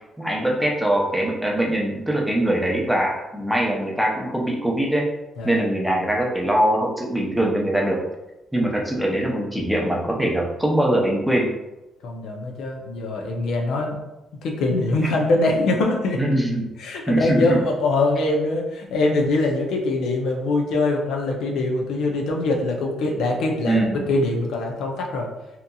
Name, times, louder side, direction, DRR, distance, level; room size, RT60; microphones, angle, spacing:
voice 1, 0.2-5.1 5.4-8.0 8.5-11.5 16.2-16.7 17.1-17.6 23.7-24.1, right 1 dB, 5° right, -1 dB, 0.6 m, -22 dB
voice 2, 12.0-14.0 14.4-16.2 16.8-23.8 24.1-25.3, left 2 dB, 80° left, 1 dB, 0.5 m, -23 dB
2.8 x 2.5 x 2.3 m, 0.97 s
cardioid pair, 90°, 0 cm